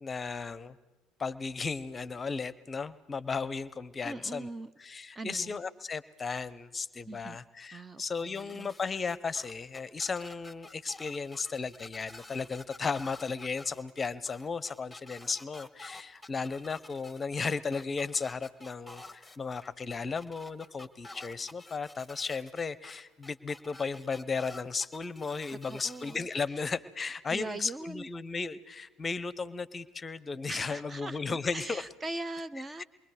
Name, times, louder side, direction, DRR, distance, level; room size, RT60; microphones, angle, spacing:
voice 1, 0.0-0.7 1.2-4.5 4.8-31.8 32.8-32.9, left 4 dB, 25° left, 17 dB, 0.8 m, -35 dB
voice 2, 4.0-4.7 5.1-5.6 7.0-7.4 7.7-8.7 25.7-26.3 27.3-28.1 30.5-32.8, right 2 dB, 20° right, 16 dB, 0.6 m, -41 dB
sound 1, 8.1-26.2, left 2 dB, 5° left, 1.3 m, -50 dB
28.5 x 22.0 x 4.9 m, 1.1 s
hypercardioid pair, 65°, 0 cm